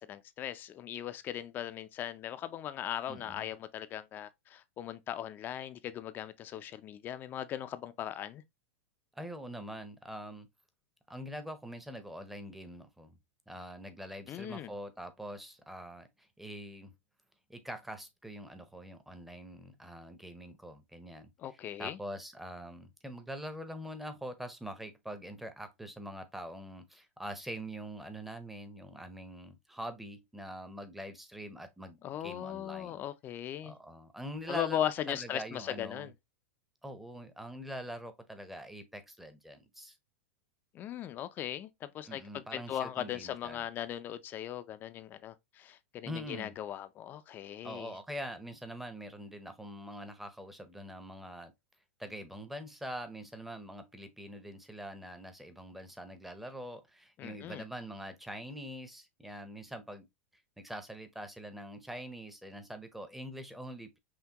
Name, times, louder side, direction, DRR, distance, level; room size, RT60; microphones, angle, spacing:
voice 1, 0.0-8.4 14.3-14.7 21.4-22.0 32.0-33.7 34.5-36.1 40.7-48.0 57.2-57.6, left 11 dB, 30° left, 0.4 m, -38 dB
voice 2, 3.1-3.5 9.1-10.5 11.1-13.2 13.5-16.9 17.5-21.3 21.8-33.0 33.6-36.1 36.8-40.0 42.0-43.7 46.1-46.5 47.6-51.5 52.0-60.1 60.6-64.0, equal, 5° right, 0.7 m, -44 dB
5.7 x 2.2 x 2.8 m
supercardioid pair, 140°, 7 cm